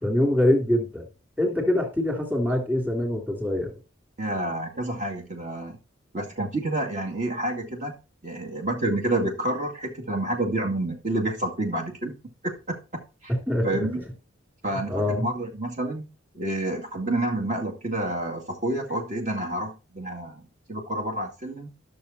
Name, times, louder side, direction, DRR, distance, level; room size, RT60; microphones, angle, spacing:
voice 1, 0.0-1.1 1.4-3.8 13.3-14.0 14.7-15.2, left 1 dB, 10° right, 2 dB, 3.1 m, -24 dB
voice 2, 4.2-5.8 6.1-7.9 8.2-12.1 12.4-12.8 13.2-13.3 13.6-14.0 14.6-16.1 16.3-20.4 20.7-21.7, right 1 dB, 35° right, 1 dB, 2.1 m, -29 dB
13.5 x 6.9 x 4.3 m, 0.32 s
head